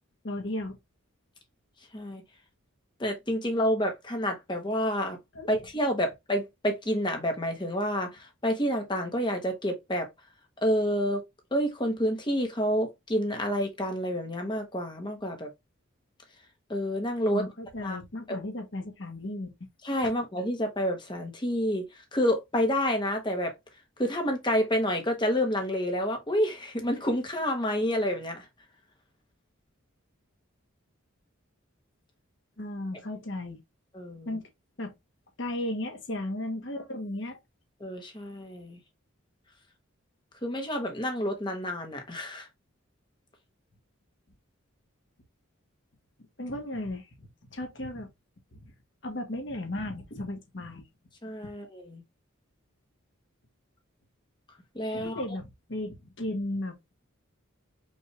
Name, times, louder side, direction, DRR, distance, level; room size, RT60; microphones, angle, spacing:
voice 1, 0.2-0.8 5.3-5.5 17.3-19.7 32.6-33.6 34.2-34.5 34.8-34.9 35.4-37.4 46.4-48.1 48.5-48.7 49.0-50.8 51.4-51.5 54.9-56.7, left 1 dB, 60° left, 1.4 m, -35 dB
voice 2, 3.0-5.2 5.5-10.1 10.6-11.2 11.5-15.5 16.7-17.4 17.8-18.0 18.3-18.4 19.8-23.5 24.0-28.4 33.9-34.3 37.8-38.8 40.4-42.5 51.2-52.0 54.7-55.2, equal, 20° left, 1.1 m, -29 dB
5.4 x 2.7 x 3.2 m
head